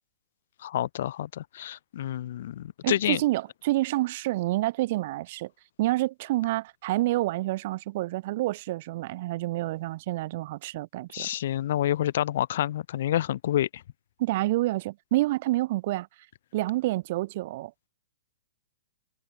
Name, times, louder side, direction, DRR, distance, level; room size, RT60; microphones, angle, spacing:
voice 1, 0.6-3.2 11.1-13.8, left 12 dB, 60° left, 2.0 m, -28 dB
voice 2, 2.8-5.5 5.8-11.3 14.2-16.1 16.5-17.7, right 17 dB, 50° right, 3.8 m, -28 dB
hypercardioid pair, 125°, 0 cm